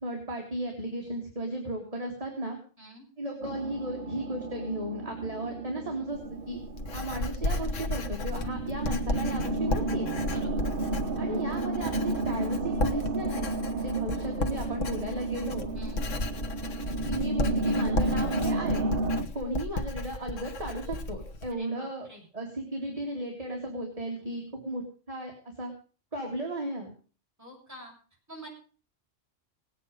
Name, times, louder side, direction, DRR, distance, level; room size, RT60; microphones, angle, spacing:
voice 1, 0.0-2.6 3.2-6.2 6.5-6.6 6.9-10.1 11.2-15.7 17.0-18.9 19.2-22.1 22.3-25.3 25.6-25.7 26.1-26.9, right 1 dB, 30° right, 1 dB, 2.4 m, -35 dB
sound 1, 3.4-19.2, right 2 dB, 50° right, 1.1 m, -32 dB
Writing, 6.1-21.5, left 2 dB, 75° left, 1.6 m, -34 dB
voice 2, 10.3-10.7 15.7-16.0 21.5-22.3 27.4-27.9 28.3-28.5, right 1 dB, 10° right, -3 dB, 6.9 m, -47 dB
19.0 x 9.2 x 5.3 m, 0.40 s
omnidirectional pair, 1.3 m